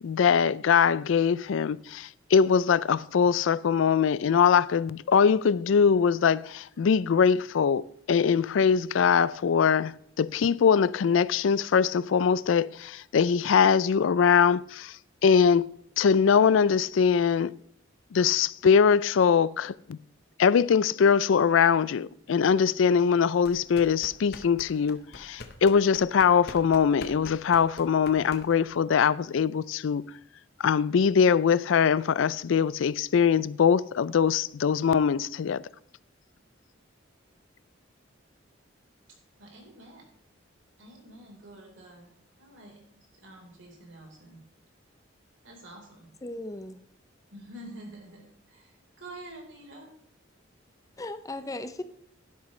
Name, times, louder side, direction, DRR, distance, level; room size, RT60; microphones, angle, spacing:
voice 1, 0.0-14.9 15.2-15.7 16.0-17.5 18.1-20.0 20.4-30.0 30.6-35.6, left 6 dB, 75° left, 0.4 m, -22 dB
sound 1, 23.4-28.8, left 3 dB, 55° left, 1.0 m, -45 dB
voice 2, 39.4-40.1 40.8-44.4 45.4-46.1 47.3-49.9, right 1 dB, 75° right, 4.0 m, -48 dB
voice 3, 46.2-46.8 51.0-51.8, left 2 dB, 15° left, 0.5 m, -36 dB
11.5 x 11.0 x 3.2 m
head